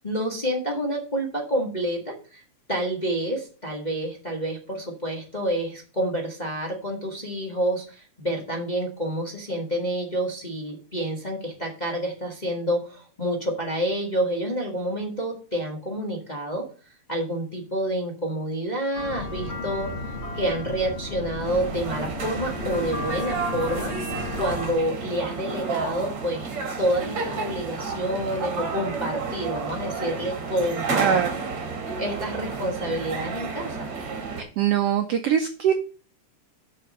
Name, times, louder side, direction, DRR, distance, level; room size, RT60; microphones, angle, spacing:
voice 1, 0.0-2.4 2.7-16.6 17.1-19.9 20.3-26.5 26.8-31.2 32.0-33.9, right 1 dB, 20° left, -1 dB, 1.3 m, -28 dB
sound 1, 18.9-24.7, left 2 dB, 75° left, 0.6 m, -34 dB
sound 2, 21.4-34.4, right 4 dB, 50° right, 2.7 m, -31 dB
voice 2, 30.9-31.3 34.4-35.7, right 9 dB, 75° right, 6 dB, 1.4 m, -22 dB
6.8 x 5.7 x 6.5 m, 0.38 s
omnidirectional pair, 3.5 m